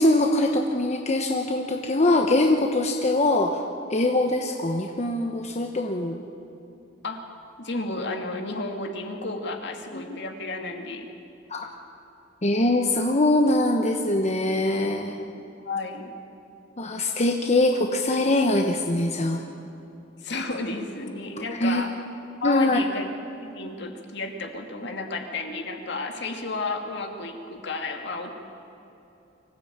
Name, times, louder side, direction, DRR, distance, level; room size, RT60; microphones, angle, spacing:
voice 1, 0.0-3.6 3.9-6.2 9.9-10.2 11.5-11.7 12.4-15.3 16.8-19.4 21.6-21.8 22.4-22.8, left 2 dB, 35° left, 3 dB, 1.1 m, -23 dB
voice 2, 7.6-11.1 15.6-16.1 20.2-21.9 22.4-23.1 23.4-28.4, left 3 dB, 65° left, 4 dB, 2.4 m, -32 dB
24.5 x 15.5 x 8.8 m, 2.9 s
head